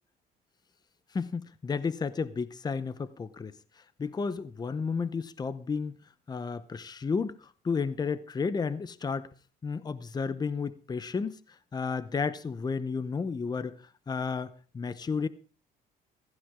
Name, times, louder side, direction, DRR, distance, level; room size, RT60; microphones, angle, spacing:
voice 1, 1.1-3.6 4.0-6.0 6.3-9.3 9.6-11.4 11.7-13.8 14.1-15.3, left 5 dB, 25° left, 0.8 m, -32 dB
15.5 x 15.0 x 3.7 m
cardioid pair, 110°, 17 cm